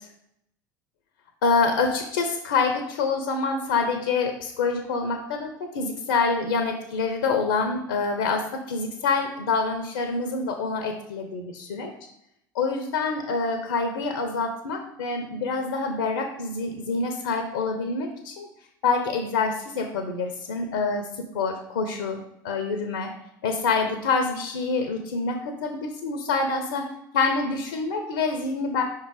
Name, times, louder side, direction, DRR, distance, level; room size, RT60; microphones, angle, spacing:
voice 1, 1.4-11.9 12.5-18.5 18.8-21.0 21.3-23.1 23.4-26.9 27.1-28.8, left 4 dB, 70° left, 5 dB, 0.8 m, -26 dB
5.5 x 3.7 x 4.8 m, 0.79 s
figure-of-eight pair, 65°, 11 cm